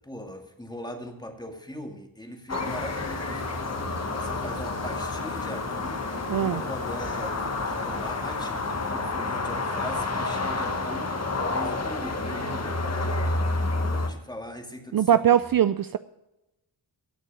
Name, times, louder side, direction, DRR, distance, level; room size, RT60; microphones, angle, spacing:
voice 1, 0.0-3.5 4.1-6.0 6.4-8.6 8.9-11.1 11.5-12.8 13.8-15.4, left 1 dB, 10° left, 4 dB, 2.1 m, -40 dB
sound 1, 2.5-14.1, left 3 dB, 35° left, 1.6 m, -29 dB
sound 2, 2.6-8.9, left 5 dB, 75° left, 1.6 m, -46 dB
voice 2, 6.3-6.6 14.9-16.0, right 10 dB, 50° right, 14 dB, 0.5 m, -21 dB
17.0 x 6.5 x 6.2 m, 0.95 s
wide cardioid pair, 80°, 44 cm